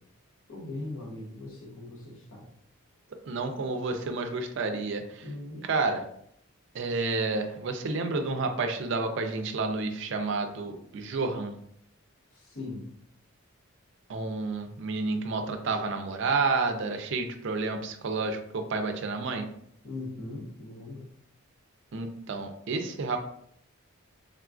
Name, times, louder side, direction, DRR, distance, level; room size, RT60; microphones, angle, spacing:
voice 1, 0.5-2.5 5.2-5.7 12.3-12.8 19.8-21.1, left 2 dB, 70° left, -1 dB, 0.8 m, -40 dB
voice 2, 3.3-5.3 5.7-6.0 6.7-11.6 14.1-19.4 21.9-23.2, right 3 dB, 55° right, 6 dB, 0.4 m, -30 dB
3.6 x 2.3 x 2.4 m, 0.70 s
head